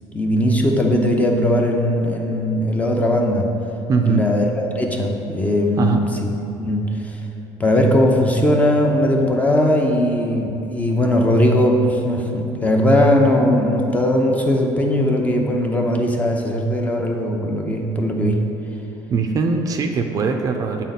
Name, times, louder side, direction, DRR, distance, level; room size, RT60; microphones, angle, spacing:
voice 1, 0.1-3.5 4.0-6.3 6.6-7.2 7.6-18.4, left 1 dB, 15° left, 1 dB, 0.6 m, -19 dB
voice 2, 3.9-4.3 5.8-6.0 19.1-20.8, right 5 dB, 35° right, 4 dB, 0.4 m, -21 dB
8.1 x 4.1 x 4.1 m, 2.8 s
cardioid pair, 135°, 10 cm